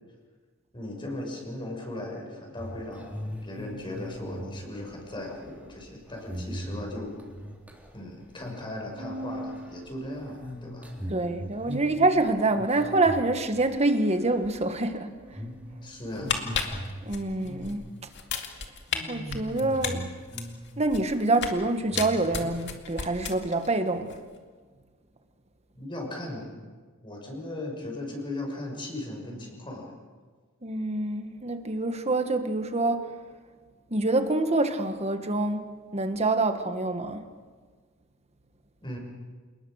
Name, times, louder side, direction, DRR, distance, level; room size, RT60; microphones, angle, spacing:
voice 1, 0.7-7.2 7.9-10.9 15.8-16.4 25.7-26.5 27.0-29.9 38.8-39.0, left 1 dB, 25° left, 6.2 m, -37 dB
sound 1, 2.6-8.0 8.3-8.8 9.1-13.9 14.3-14.7 15.2-15.6 16.0-18.1 18.3-18.5 18.9-20.9 21.2-21.3 21.9-22.5, equal, 10° right, 3.6 m, -39 dB
Bowed string instrument, 9.0-11.4 11.8-12.6 13.6-16.1, right 1 dB, 90° right, 3.1 m, -44 dB
voice 2, 11.1-15.4 17.0-17.9 19.1-20.1 20.8-24.2 30.6-33.1 33.9-35.7 35.9-37.3, right 2 dB, 30° right, 1.6 m, -26 dB
sound 2, 16.1-17.7 18.1-19.0 19.3-21.6 21.9-23.7 24.0-24.2, left 6 dB, 60° left, 2.3 m, -33 dB
28.0 x 20.0 x 6.6 m
head